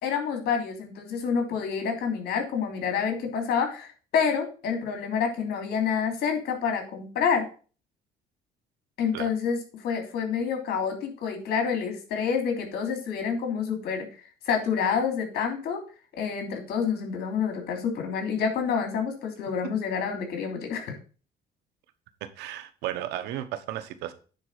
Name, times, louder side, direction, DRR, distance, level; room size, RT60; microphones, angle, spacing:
voice 1, 0.0-7.5 9.0-9.6 9.8-14.1 14.4-15.8 16.2-20.9, left 6 dB, 70° left, 4 dB, 3.1 m, -28 dB
voice 2, 22.2-24.1, right 12 dB, 90° right, 11 dB, 1.1 m, -34 dB
9.5 x 4.1 x 6.5 m, 0.37 s
cardioid pair, 110°, 17 cm